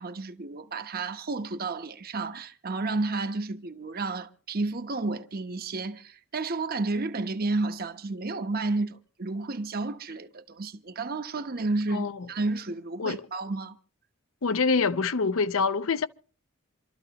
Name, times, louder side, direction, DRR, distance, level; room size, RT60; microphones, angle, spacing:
voice 1, 0.0-13.7, right 3 dB, 50° right, 1.0 m, -31 dB
voice 2, 14.4-16.1, left 4 dB, 90° left, 0.7 m, -25 dB
27.5 x 13.0 x 3.0 m
head